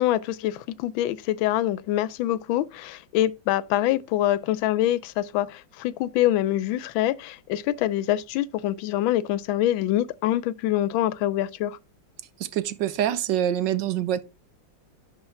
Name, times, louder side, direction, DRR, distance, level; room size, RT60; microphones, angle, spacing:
voice 1, 0.0-11.8, left 13 dB, 85° left, 1.4 m, -25 dB
voice 2, 12.4-14.2, right 11 dB, 75° right, 1.2 m, -25 dB
11.0 x 4.2 x 3.3 m
omnidirectional pair, 2.1 m